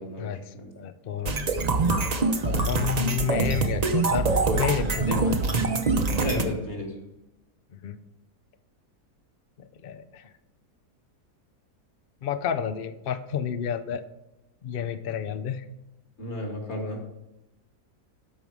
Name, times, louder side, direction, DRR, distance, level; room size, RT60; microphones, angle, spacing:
voice 1, 0.0-0.7 6.2-6.9 16.2-17.0, left 1 dB, 40° left, 2 dB, 2.3 m, -32 dB
voice 2, 0.8-1.3 2.4-5.4 7.8-8.0 9.6-10.3 12.2-14.0 14.6-15.6, left 8 dB, 75° left, 10 dB, 0.5 m, -30 dB
sound 1, 1.3-6.4, right 3 dB, 35° right, 0.7 m, -24 dB
13.0 x 5.4 x 4.8 m, 0.93 s
omnidirectional pair, 1.7 m